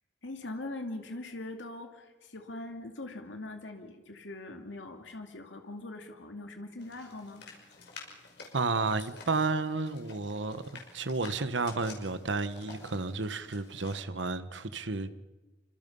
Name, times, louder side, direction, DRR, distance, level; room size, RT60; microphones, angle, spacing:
voice 1, 0.2-7.4, left 2 dB, 85° left, 2.6 m, -42 dB
sound 1, 6.8-14.0, left 4 dB, 65° left, 5.8 m, -51 dB
voice 2, 8.5-15.1, right 3 dB, 80° right, 1.2 m, -32 dB
27.5 x 25.0 x 5.5 m
head